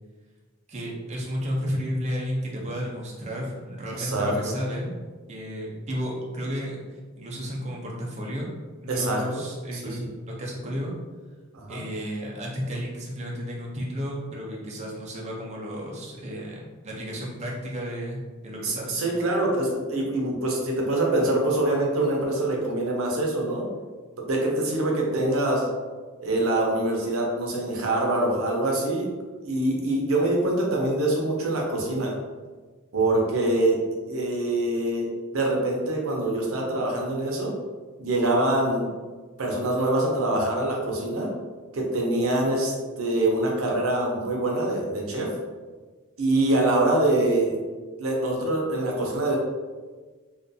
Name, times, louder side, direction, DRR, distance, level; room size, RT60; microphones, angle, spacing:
voice 1, 0.7-4.9 5.3-8.5 8.8-10.9 11.7-19.0, equal, 30° right, -3 dB, 0.5 m, -32 dB
voice 2, 3.9-4.5 8.9-9.4 9.7-10.1 11.5-11.8 18.6-23.6 24.2-25.7 26.2-29.1 29.4-32.2 32.9-33.8 34.1-37.5 38.0-38.9 39.4-41.3 41.7-45.3 46.2-47.6 48.0-49.4, right 1 dB, 75° right, -1 dB, 0.6 m, -24 dB
2.5 x 2.2 x 2.5 m, 1.4 s
head